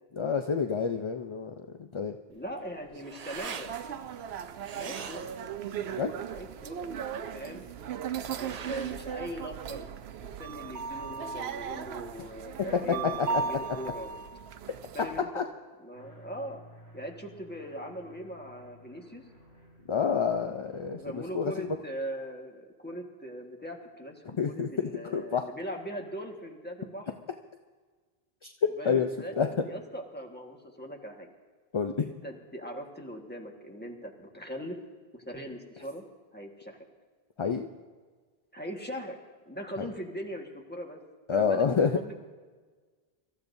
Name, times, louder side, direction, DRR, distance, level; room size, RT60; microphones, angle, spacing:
voice 1, 0.2-2.2 6.0-6.1 12.6-12.7 13.2-13.4 15.3-15.4 19.9-21.5 24.4-25.4 28.4-29.1 29.4-29.5 31.7-32.1 37.4-37.7 39.8-39.9 41.3-42.0, left 6 dB, 40° left, 5 dB, 0.5 m, -28 dB
voice 2, 2.3-3.8 4.8-5.3 6.3-6.9 7.3-7.6 8.3-9.9 10.2-14.2 14.9-15.5 15.8-16.6 16.9-19.2 20.9-27.1 28.8-29.3 29.6-31.3 32.1-34.8 35.1-36.0 36.3-36.8 38.5-39.2 39.4-41.0 41.3-41.6 41.9-42.2, equal, 10° left, 1 dB, 1.4 m, -40 dB
sound 1, 2.3-10.2, right 7 dB, 50° right, 0.5 m, -45 dB
sound 2, 3.6-15.2, right 7 dB, 80° right, 0.9 m, -37 dB
sound 3, 15.9-21.2, equal, 70° left, 4.8 m, -55 dB
25.0 x 13.5 x 2.7 m, 1.4 s
omnidirectional pair, 1.0 m